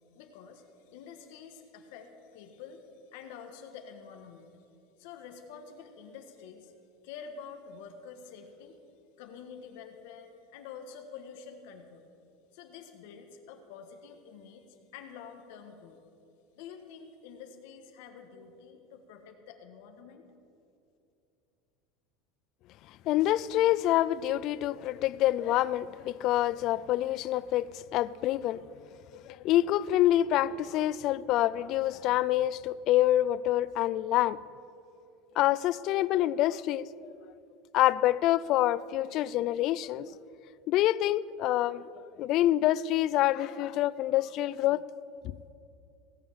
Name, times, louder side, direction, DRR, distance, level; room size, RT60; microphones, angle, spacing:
voice 1, 0.1-4.5 5.0-6.7 7.0-8.8 9.2-12.1 12.5-16.0 16.5-20.3, left 6 dB, 75° left, 1.4 m, -48 dB
voice 2, 23.1-28.7 29.1-34.4 35.4-36.9 37.7-40.1 40.7-41.8 42.2-44.8, left 14 dB, 50° left, 0.3 m, -26 dB
17.0 x 7.2 x 7.3 m
supercardioid pair, 150°, 0 cm